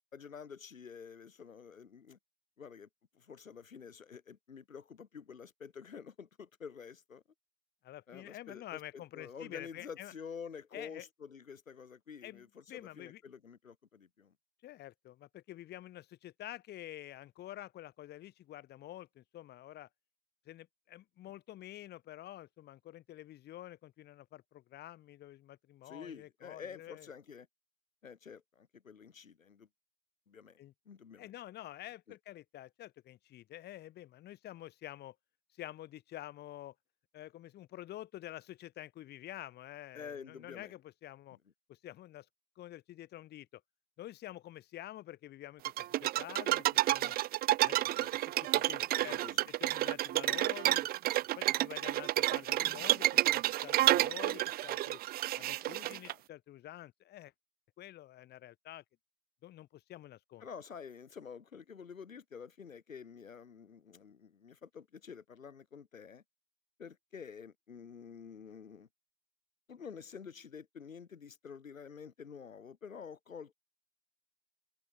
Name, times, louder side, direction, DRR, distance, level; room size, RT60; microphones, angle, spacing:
voice 1, 0.1-2.2 2.6-2.9 3.1-7.2 8.1-14.3 25.8-27.5 28.0-29.7 30.3-30.6 30.9-31.3 32.1-32.2 39.9-40.7 47.7-48.2 48.5-48.7 49.0-49.5 56.0-56.2 60.4-66.2 66.8-68.9 69.7-73.5, left 6 dB, 85° left, 4.3 m, -49 dB
voice 2, 7.8-10.1 10.7-11.1 12.2-13.2 14.6-19.9 20.4-27.1 30.6-30.7 31.2-35.2 35.5-36.7 37.1-41.4 41.7-42.3 42.5-43.6 44.0-47.2 47.6-47.8 48.6-49.2 49.6-50.9 51.4-55.0 55.3-57.3 57.8-58.8 59.4-60.5, left 14 dB, 25° left, 3.3 m, -48 dB
sound 1, 45.6-56.1, right 15 dB, 25° right, 1.2 m, -30 dB
hypercardioid pair, 120°, 39 cm